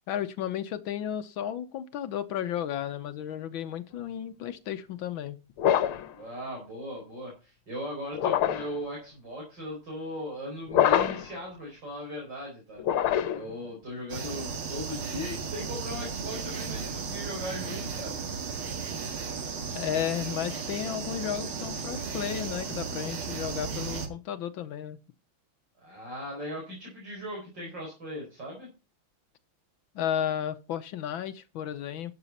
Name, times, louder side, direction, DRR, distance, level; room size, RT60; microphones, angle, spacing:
voice 1, 0.1-5.4 19.7-25.0 29.9-32.1, left 10 dB, 70° left, 1.5 m, -33 dB
sound 1, 5.6-6.1 8.1-8.8 10.7-11.3 12.8-13.5, left 10 dB, 90° left, 1.8 m, -25 dB
voice 2, 6.1-18.2 25.8-28.7, equal, 55° right, 5.1 m, -38 dB
sound 2, 14.1-24.1, right 5 dB, 80° right, 2.6 m, -35 dB
12.0 x 7.9 x 4.2 m
omnidirectional pair, 2.3 m